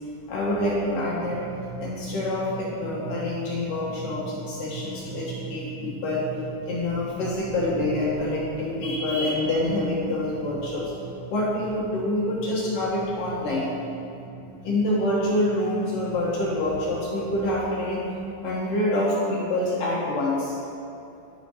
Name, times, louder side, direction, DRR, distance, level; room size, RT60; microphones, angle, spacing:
voice 1, 0.3-1.4 1.8-6.2 6.7-10.9 11.3-13.7 14.2-14.3 14.6-18.0 18.4-20.6, left 1 dB, 70° left, -6 dB, 2.2 m, -26 dB
Drum, 1.2-17.4, right 5 dB, 85° right, 2.8 m, -41 dB
12.5 x 5.6 x 2.8 m, 2.7 s
omnidirectional pair, 4.8 m